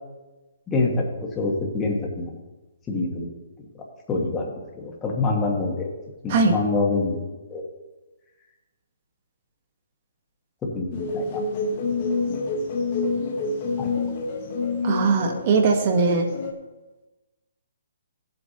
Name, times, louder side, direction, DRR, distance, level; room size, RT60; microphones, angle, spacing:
voice 1, 0.7-1.0 1.4-2.3 2.9-3.2 4.1-5.9 6.2-7.2 7.5-7.6 10.7-11.4 13.8-13.9, left 3 dB, 10° left, -1 dB, 1.3 m, -25 dB
sound 1, 10.9-16.5, left 3 dB, 30° left, 1.1 m, -27 dB
voice 2, 14.8-16.3, right 4 dB, 30° right, 3 dB, 1.1 m, -20 dB
15.5 x 7.9 x 2.8 m, 1.1 s
hypercardioid pair, 170°, 0 cm